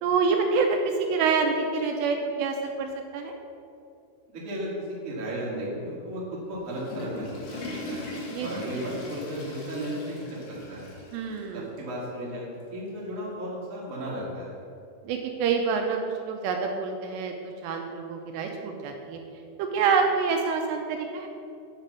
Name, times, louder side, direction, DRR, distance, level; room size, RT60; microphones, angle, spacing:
voice 1, 0.0-3.3 8.3-8.5 11.1-11.7 15.0-16.0 16.3-19.2 19.6-21.3, right 5 dB, 80° right, 3 dB, 2.6 m, -27 dB
voice 2, 4.3-6.2 6.5-7.6 7.8-8.0 8.4-10.4 10.7-10.9 11.5-14.5, equal, 60° right, -6 dB, 0.8 m, -34 dB
Water / Toilet flush, 6.5-11.5 11.8-11.9 12.6-12.7 14.0-14.1, left 2 dB, 75° left, 3.7 m, -40 dB
8.8 x 4.1 x 6.8 m, 2.6 s
omnidirectional pair, 5.2 m